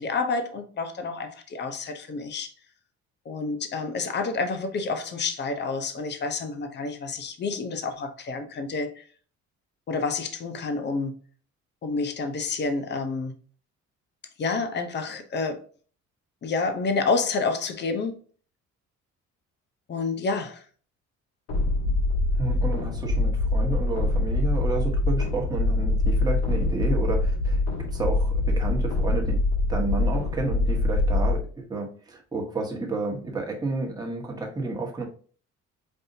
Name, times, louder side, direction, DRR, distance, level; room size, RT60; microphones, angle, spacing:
voice 1, 0.0-2.5 3.2-9.0 9.9-11.2 11.8-13.3 14.4-15.6 16.4-18.2 19.9-20.6, left 4 dB, 35° left, 0.8 m, -29 dB
sound 1, 21.5-31.4, left 2 dB, 70° left, 1.7 m, -24 dB
voice 2, 22.3-27.6 27.9-29.4 29.7-35.0, right 3 dB, 15° right, 1.4 m, -31 dB
5.3 x 2.6 x 2.7 m
cardioid pair, 110°, 29 cm